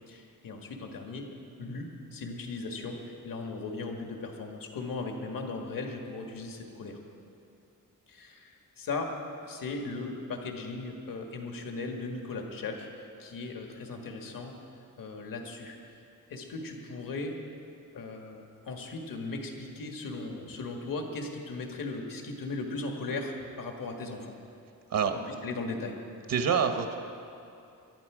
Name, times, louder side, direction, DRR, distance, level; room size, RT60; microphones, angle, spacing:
voice 1, 0.1-1.3 1.6-7.0 8.1-9.1 9.4-14.6 15.0-15.9 16.3-17.3 17.9-24.3 25.1-25.9, left 3 dB, 80° left, 2 dB, 1.7 m, -37 dB
voice 2, 26.3-27.0, right 6 dB, 80° right, 6 dB, 1.2 m, -26 dB
22.5 x 12.0 x 5.0 m, 2.6 s
wide cardioid pair, 175°, 34 cm